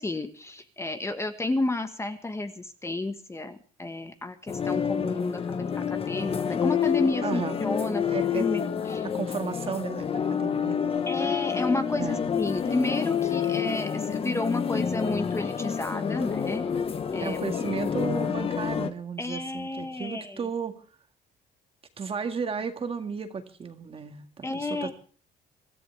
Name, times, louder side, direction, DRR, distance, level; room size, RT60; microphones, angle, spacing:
voice 1, 0.0-8.0 8.3-9.0 11.1-16.6 17.1-17.4 19.2-20.5 24.4-24.9, left 2 dB, 15° left, 8 dB, 1.4 m, -31 dB
sound 1, 4.5-18.9, left 7 dB, 35° left, 1.3 m, -28 dB
voice 2, 7.2-7.6 8.1-8.5 9.0-11.0 12.0-12.3 17.2-20.7 22.0-24.9, right 5 dB, 35° right, 7 dB, 1.9 m, -34 dB
24.5 x 14.0 x 3.4 m, 0.41 s
cardioid pair, 110°, 17 cm